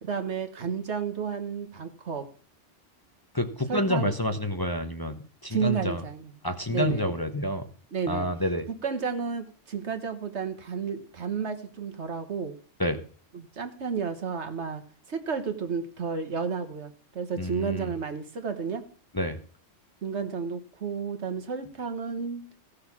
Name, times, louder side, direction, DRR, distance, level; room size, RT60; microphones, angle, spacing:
voice 1, 0.0-2.3 3.7-4.1 5.5-6.3 6.7-7.0 7.9-8.3 8.7-12.6 13.3-14.8 15.1-18.8 20.0-22.4, right 6 dB, 70° right, 8 dB, 1.6 m, -32 dB
voice 2, 3.3-6.0 6.4-7.7 8.1-8.7 12.8-13.0 17.4-17.9 19.1-19.4, equal, 20° left, 7 dB, 0.9 m, -28 dB
15.5 x 6.6 x 5.9 m, 0.43 s
omnidirectional pair, 1.2 m